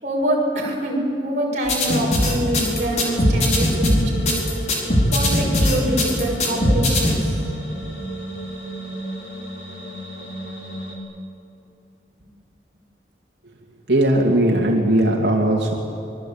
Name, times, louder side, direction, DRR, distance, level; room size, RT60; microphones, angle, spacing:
voice 1, 0.0-4.3 5.1-7.4, right 1 dB, 40° right, -2 dB, 6.4 m, -25 dB
sound 1, 1.7-7.2, left 1 dB, 40° left, 4.9 m, -19 dB
sound 2, 2.5-11.0, right 1 dB, 85° left, 4.9 m, -34 dB
voice 2, 13.9-15.7, right 1 dB, 80° right, -1 dB, 2.5 m, -18 dB
25.0 x 22.5 x 8.8 m, 2.7 s
head